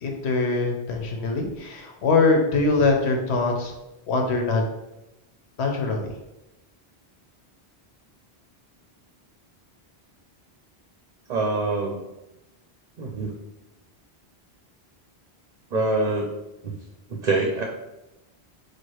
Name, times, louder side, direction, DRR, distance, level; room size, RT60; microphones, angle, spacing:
voice 1, 0.0-3.7 4.1-4.6 5.6-6.1, left 3 dB, 90° left, 2 dB, 1.1 m, -23 dB
voice 2, 11.3-12.0 13.0-13.3 15.7-16.3 16.6-16.7 17.1-17.6, right 3 dB, 50° right, 0 dB, 0.7 m, -24 dB
4.4 x 2.4 x 4.6 m, 0.94 s
omnidirectional pair, 1.1 m